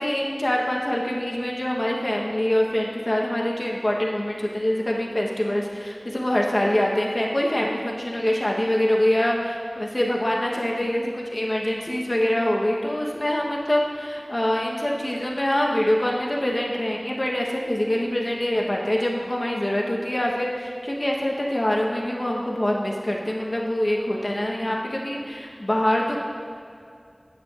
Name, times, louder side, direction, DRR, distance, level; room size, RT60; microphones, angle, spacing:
voice 1, 0.0-26.2, left 1 dB, 45° left, -2 dB, 0.9 m, -24 dB
9.6 x 8.2 x 2.4 m, 2.4 s
wide cardioid pair, 45°, 0 cm